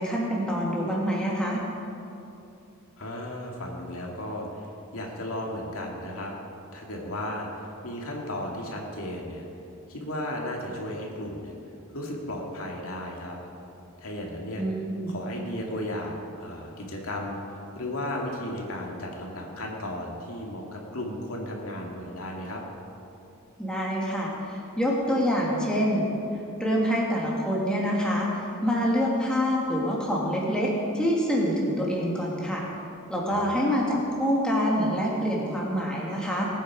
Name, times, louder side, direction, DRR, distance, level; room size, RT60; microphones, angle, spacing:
voice 1, 0.0-1.6 14.6-15.2 23.6-26.1 26.6-32.6 33.1-36.5, equal, 5° left, -4 dB, 2.1 m, -26 dB
voice 2, 3.0-6.3 6.7-9.4 9.9-11.5 11.9-13.4 14.0-14.6 15.1-22.6 33.3-33.7, left 1 dB, 80° left, -1 dB, 2.3 m, -35 dB
19.5 x 9.2 x 4.8 m, 2.8 s
head